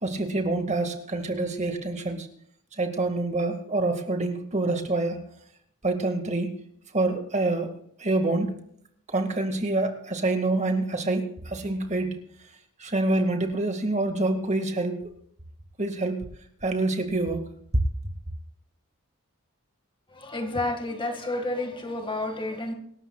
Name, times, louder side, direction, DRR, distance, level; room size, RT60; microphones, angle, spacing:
voice 1, 0.0-2.3 2.8-5.2 5.8-6.5 6.9-7.7 8.0-8.6 9.1-12.2 12.8-15.0 15.8-16.2 16.6-17.4, right 2 dB, 35° right, 5 dB, 1.9 m, -26 dB
voice 2, 20.1-22.7, left 2 dB, 25° left, 5 dB, 1.9 m, -30 dB
25.5 x 13.0 x 2.4 m, 0.65 s
head